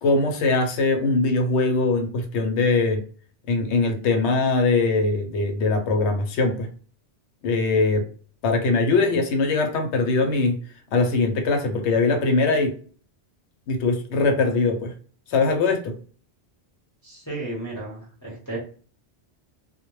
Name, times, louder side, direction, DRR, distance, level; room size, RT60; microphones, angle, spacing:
voice 1, 0.0-3.0 3.5-6.7 7.4-8.0 8.4-10.6 10.9-12.8 13.7-14.9 15.3-15.9, left 3 dB, 85° left, 4 dB, 0.9 m, -21 dB
voice 2, 17.0-18.6, right 2 dB, 20° left, -5 dB, 0.7 m, -33 dB
2.1 x 2.1 x 3.0 m, 0.41 s
omnidirectional pair, 1.1 m